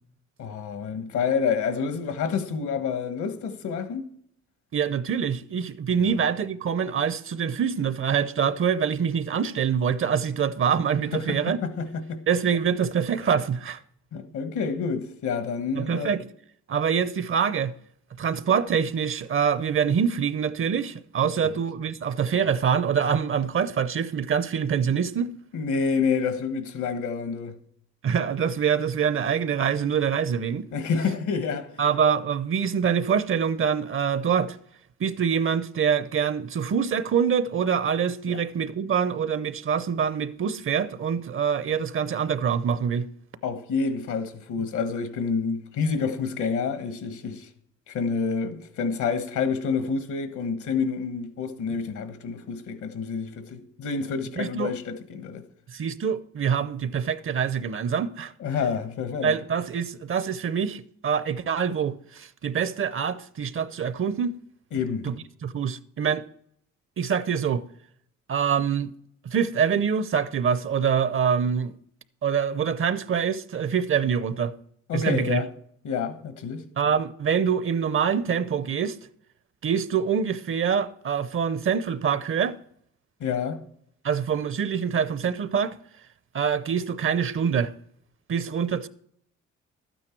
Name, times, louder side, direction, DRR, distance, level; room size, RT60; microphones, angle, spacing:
voice 1, 0.4-4.0 11.1-12.2 14.1-16.2 21.4-21.6 25.5-27.5 30.7-31.8 38.3-38.4 43.4-47.5 47.9-55.4 58.4-59.3 64.7-65.1 74.9-75.5 75.8-76.6 83.2-83.6, left 5 dB, 75° left, 1.4 m, -28 dB
voice 2, 4.7-11.6 12.3-13.8 15.7-16.3 16.7-17.7 18.2-25.3 28.0-30.7 31.8-34.6 35.0-43.1 54.4-54.7 55.7-58.3 59.2-64.3 65.0-65.1 65.4-66.2 67.0-67.6 68.3-68.9 69.2-71.7 72.2-74.5 74.9-75.4 76.8-79.0 79.6-82.6 84.0-85.8 86.3-87.7 88.3-88.9, right 7 dB, 45° right, 0.7 m, -25 dB
12.0 x 9.2 x 4.5 m
cardioid pair, 90°, 30 cm